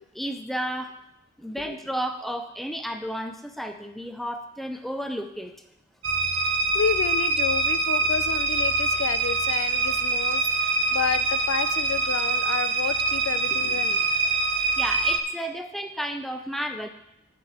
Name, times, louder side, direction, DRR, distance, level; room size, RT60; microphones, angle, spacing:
voice 1, 0.1-0.9 1.4-5.5 14.8-16.9, equal, ahead, 6 dB, 0.5 m, -32 dB
sound 1, 6.0-15.2, right 3 dB, 65° right, 0.8 m, -24 dB
voice 2, 6.3-14.0, left 7 dB, 85° left, 13 dB, 0.4 m, -30 dB
7.6 x 5.2 x 7.1 m, 0.81 s
head